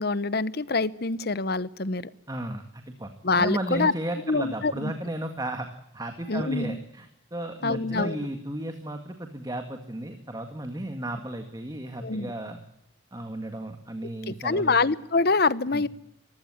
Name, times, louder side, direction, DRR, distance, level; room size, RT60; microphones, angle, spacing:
voice 1, 0.0-2.1 3.2-3.9 4.3-4.9 6.3-6.8 7.6-8.2 12.0-12.3 14.3-15.9, left 3 dB, 50° left, 18 dB, 0.9 m, -25 dB
voice 2, 2.3-5.7 5.9-12.6 13.1-14.8 15.7-15.8, right 1 dB, 20° right, 6 dB, 1.8 m, -34 dB
24.0 x 15.5 x 9.7 m, 0.79 s
head